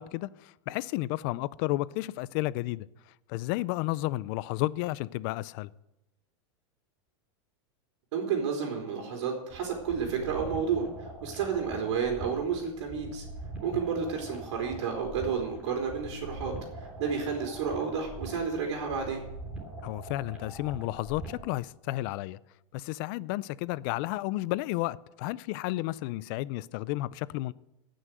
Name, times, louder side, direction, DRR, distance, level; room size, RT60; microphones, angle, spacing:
voice 1, 0.0-2.9 3.3-5.7 19.8-22.4 22.7-27.5, left 18 dB, 45° left, 0.4 m, -32 dB
voice 2, 8.1-13.2 13.6-19.2, right 6 dB, 65° right, 3.5 m, -31 dB
sound 1, 9.5-21.5, right 2 dB, 10° right, 3.2 m, -43 dB
17.5 x 6.4 x 7.7 m
supercardioid pair, 150°, 16 cm